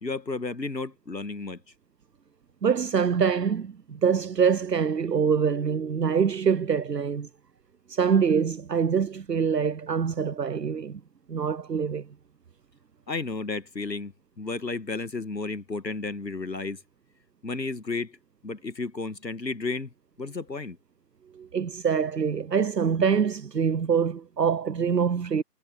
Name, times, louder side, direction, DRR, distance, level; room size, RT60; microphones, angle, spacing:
voice 1, 0.0-1.6 13.1-16.8 17.4-18.1 18.4-19.9 20.2-20.8, left 3 dB, 85° left, 1.7 m, -32 dB
voice 2, 2.6-7.3 7.9-11.0 11.3-12.1 21.3-25.4, right 6 dB, 75° right, 0.8 m, -25 dB
figure-of-eight pair, 155°, 49 cm